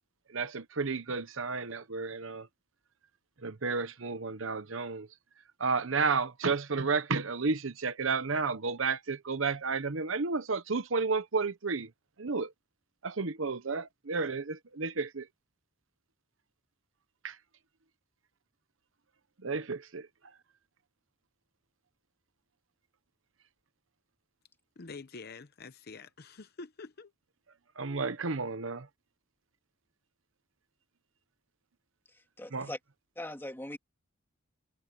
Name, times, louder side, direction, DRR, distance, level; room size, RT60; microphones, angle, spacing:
voice 1, 0.3-2.5 3.4-5.1 5.6-11.9 12.2-12.5 13.0-15.3 17.2-17.4 19.4-20.1 27.8-28.9 32.5-32.7, right 4 dB, 65° right, 1.0 m, -32 dB
voice 2, 24.8-27.1, left 4 dB, 50° left, 0.8 m, -46 dB
voice 3, 32.4-32.8 33.2-33.8, left 1 dB, 10° left, 2.5 m, -40 dB
head